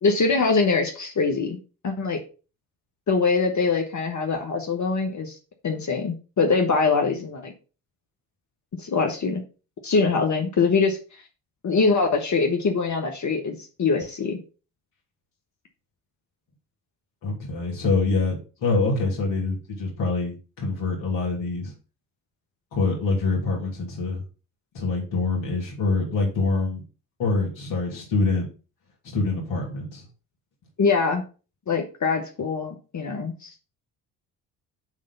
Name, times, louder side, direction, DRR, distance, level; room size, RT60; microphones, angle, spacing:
voice 1, 0.0-1.6 1.8-2.2 3.1-5.3 5.6-7.5 8.8-9.4 9.8-11.0 11.6-14.4 30.8-31.2 31.7-33.5, left 4 dB, 40° left, 3 dB, 1.5 m, -23 dB
voice 2, 17.2-21.7 22.7-24.2 24.7-26.8 27.2-28.5 29.0-30.0, left 3 dB, 75° left, -1 dB, 3.2 m, -25 dB
7.6 x 3.7 x 5.3 m, 0.34 s
hypercardioid pair, 50°, 45 cm